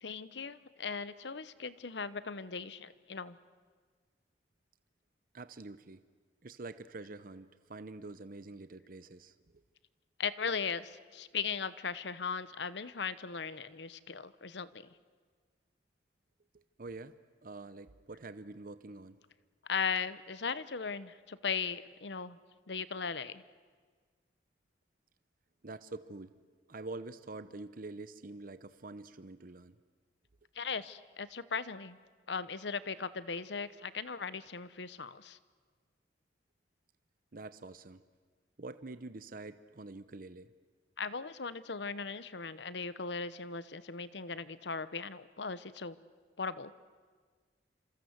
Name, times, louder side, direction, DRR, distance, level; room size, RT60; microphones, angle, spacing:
voice 1, 0.0-3.4 10.2-14.9 19.6-22.4 22.7-23.4 30.5-32.0 32.3-35.4 41.0-46.0 46.4-46.7, left 5 dB, 70° left, 15 dB, 0.9 m, -38 dB
voice 2, 5.3-6.0 6.4-9.6 16.5-17.2 17.4-19.2 25.6-26.3 26.7-29.8 37.3-38.0 38.6-40.5, right 3 dB, 50° right, 13 dB, 0.8 m, -46 dB
27.0 x 27.0 x 8.0 m, 1.5 s
head